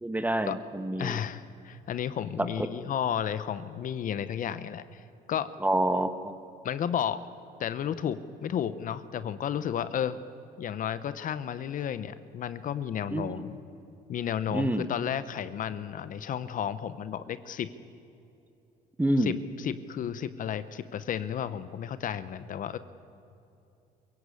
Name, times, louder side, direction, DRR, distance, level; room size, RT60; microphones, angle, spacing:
voice 1, 0.0-1.2 2.4-2.9 5.6-6.3 13.1-13.4 14.5-14.9 19.0-19.3, right 1 dB, 10° right, 10 dB, 1.3 m, -28 dB
voice 2, 1.0-5.0 5.3-5.5 6.6-7.2 7.6-10.2 10.6-13.6 14.1-17.7 19.2-22.8, left 9 dB, 50° left, 14 dB, 0.8 m, -32 dB
23.0 x 16.5 x 8.5 m, 2.8 s
cardioid pair, 110°, 17 cm